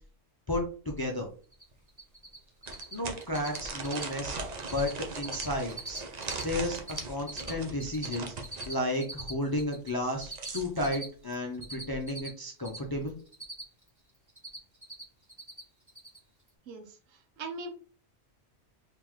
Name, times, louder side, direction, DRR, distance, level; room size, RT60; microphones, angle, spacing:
voice 1, 0.5-1.3 2.9-4.4 4.7-6.0 6.4-6.8 7.1-8.3 8.7-13.1, left 1 dB, 35° left, 1 dB, 0.3 m, -32 dB
sound 1, 1.2-1.3 1.7-1.8 2.7-8.7 10.0-10.9, right 4 dB, 50° right, 0.5 m, -40 dB
Cricket, 1.5-1.6 1.9-2.4 2.6-2.9 3.2-3.6 3.8-4.1 4.4-4.9 5.1-6.4 6.7-9.9 10.2-12.8 13.1-13.9 14.1-15.0 15.3-15.6 15.9-16.2, right 2 dB, 15° right, 1.0 m, -41 dB
voice 2, 16.7-17.7, right 3 dB, 90° right, 5 dB, 1.1 m, -41 dB
3.8 x 2.8 x 3.0 m, 0.40 s
omnidirectional pair, 1.3 m